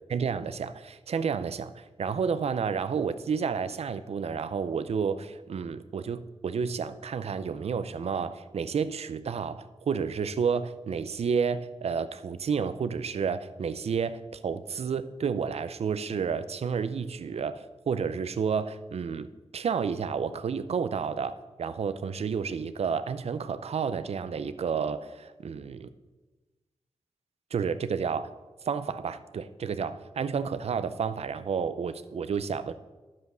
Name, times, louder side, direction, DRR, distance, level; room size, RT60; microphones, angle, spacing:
voice 1, 0.1-19.3 19.5-25.9 27.5-28.3 28.7-32.7, right 6 dB, 70° right, 13 dB, 0.6 m, -31 dB
10.5 x 7.5 x 6.2 m, 1.2 s
wide cardioid pair, 160°, 11 cm